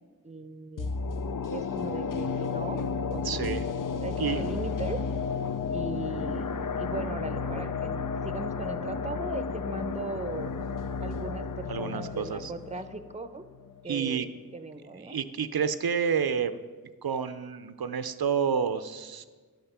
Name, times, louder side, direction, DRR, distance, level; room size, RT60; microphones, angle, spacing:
voice 1, 0.2-0.9 1.5-2.8 3.1-3.6 4.0-5.0 5.7-10.6 11.0-13.4 13.8-15.2, right 3 dB, 20° right, 10 dB, 0.7 m, -38 dB
sound 1, 0.8-13.9 14.2-14.3, left 5 dB, 60° left, 0.5 m, -32 dB
voice 2, 3.2-3.6 4.2-4.4 11.7-12.5 13.9-14.3 15.0-16.6 17.0-19.3, right 7 dB, 85° right, 11 dB, 0.5 m, -29 dB
11.5 x 5.7 x 6.8 m, 1.4 s
wide cardioid pair, 55°, 36 cm